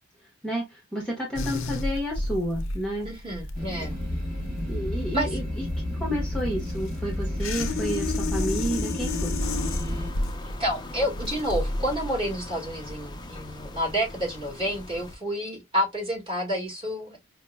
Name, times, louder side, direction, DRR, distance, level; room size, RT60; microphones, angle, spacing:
voice 1, 0.4-3.1 4.7-5.4 6.0-9.4, equal, 5° left, 0.8 m, -30 dB
sound 1, 1.4-12.0, left 2 dB, 70° left, 0.5 m, -32 dB
voice 2, 3.0-4.0 5.1-5.4 10.4-17.2, equal, 25° right, 1.7 m, -29 dB
sound 2, 3.5-10.1, left 1 dB, 50° right, 1.5 m, -31 dB
sound 3, 9.4-15.2, left 1 dB, 20° left, 0.4 m, -39 dB
5.1 x 2.0 x 2.2 m
head